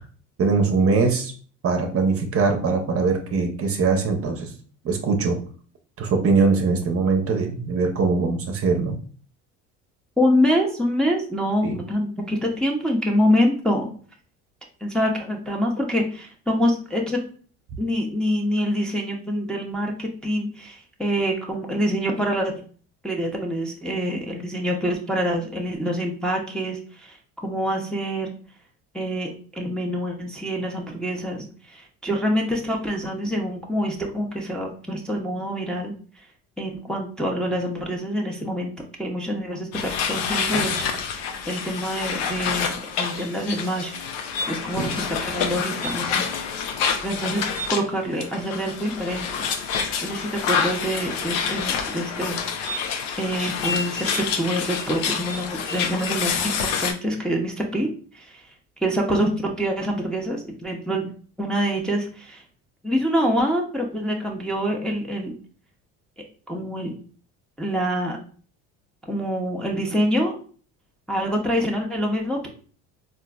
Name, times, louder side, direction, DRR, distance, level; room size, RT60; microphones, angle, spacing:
voice 1, 0.4-1.3 1.6-4.5 4.8-5.4 6.0-9.0 11.6-11.8 44.8-44.9, right 4 dB, 40° right, 5 dB, 0.6 m, -22 dB
voice 2, 10.2-13.9 14.8-17.2 17.8-22.5 23.0-28.3 28.9-36.3 36.6-40.8 41.5-43.9 44.5-46.3 47.0-47.4 47.7-49.3 50.0-52.4 53.2-57.9 58.1-58.5 58.8-61.1 61.4-62.4 62.8-65.3 66.5-66.9 67.6-68.2 69.0-70.4 71.1-72.5, equal, ahead, -1 dB, 0.6 m, -25 dB
sound 1, 39.7-47.8 48.2-56.9, left 6 dB, 75° left, 0.6 m, -27 dB
3.7 x 2.5 x 2.2 m, 0.43 s
supercardioid pair, 80°, 36 cm